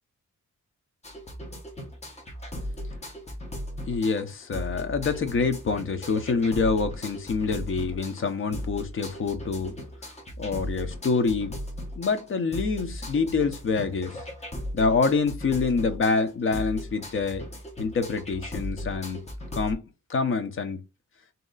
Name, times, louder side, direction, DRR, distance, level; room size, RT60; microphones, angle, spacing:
sound 1, 1.0-19.7, equal, 20° left, 1.0 m, -37 dB
voice 1, 3.9-9.7 10.4-11.5 12.0-14.2 14.7-17.5 17.8-19.2 19.5-19.8 20.1-20.8, left 4 dB, 40° left, 0.6 m, -26 dB
3.1 x 2.8 x 3.8 m
wide cardioid pair, 170°, 31 cm